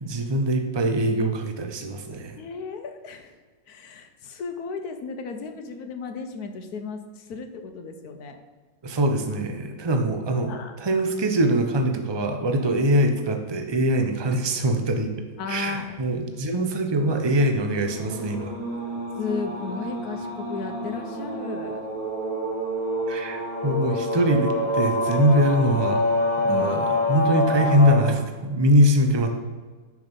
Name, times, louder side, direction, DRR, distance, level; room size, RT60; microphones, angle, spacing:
voice 1, 0.0-2.4 8.8-10.5 10.8-15.1 15.5-18.5 23.1-26.0 26.4-29.3, right 1 dB, 25° right, 5 dB, 0.7 m, -23 dB
voice 2, 2.4-3.4 3.7-8.4 10.4-10.7 15.4-16.0 19.2-21.8 26.5-26.8, left 4 dB, 80° left, 6 dB, 1.4 m, -34 dB
sound 1, 17.6-27.9, left 1 dB, 80° right, 3.7 m, -27 dB
6.9 x 6.3 x 6.8 m, 1.4 s
omnidirectional pair, 1.6 m